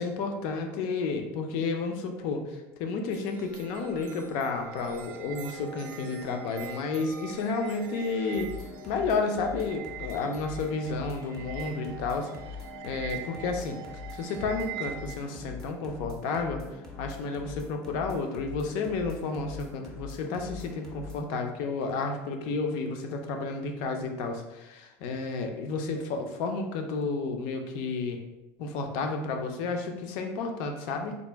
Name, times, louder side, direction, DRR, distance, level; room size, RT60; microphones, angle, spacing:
voice 1, 0.0-8.5 8.9-12.3 12.8-13.8 14.1-28.2 28.6-31.2, left 4 dB, 55° left, 4 dB, 0.5 m, -31 dB
sound 1, 3.1-15.2, right 8 dB, 50° right, 0.4 m, -43 dB
sound 2, 8.3-21.2, left 4 dB, 5° left, 0.5 m, -43 dB
4.0 x 2.5 x 3.4 m, 0.98 s
cardioid pair, 180°, 8 cm